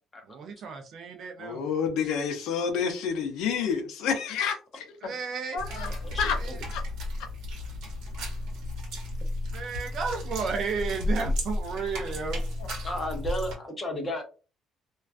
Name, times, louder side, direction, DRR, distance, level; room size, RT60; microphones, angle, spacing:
voice 1, 0.3-1.6 5.0-6.6 9.5-12.4, right 5 dB, 45° right, 0.4 m, -33 dB
voice 2, 1.4-5.1 5.5-6.4 6.6-6.8, left 6 dB, 75° left, 0.5 m, -29 dB
sound 1, 5.6-13.5, left 1 dB, 75° right, 1.0 m, -33 dB
voice 3, 6.0-6.5 12.8-14.2, equal, 20° left, 0.6 m, -33 dB
2.3 x 2.2 x 2.4 m
cardioid pair, 170°, 0 cm